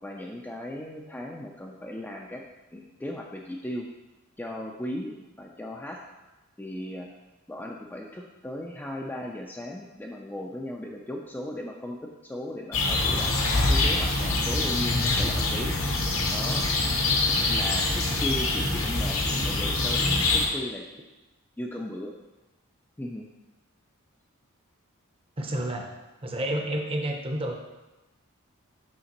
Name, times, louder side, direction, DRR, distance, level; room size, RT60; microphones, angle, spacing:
voice 1, 0.0-2.4 2.7-3.9 4.4-6.0 6.6-7.1 7.5-13.4 13.7-15.8 16.3-16.7 17.4-20.8 21.6-22.1 23.0-23.3, left 1 dB, 10° left, 0 dB, 0.3 m, -36 dB
sound 1, 12.7-20.5, left 2 dB, 70° left, 0.9 m, -25 dB
voice 2, 25.4-25.9 26.2-27.5, right 1 dB, 25° right, 2 dB, 0.6 m, -29 dB
6.4 x 5.1 x 2.9 m, 1.1 s
head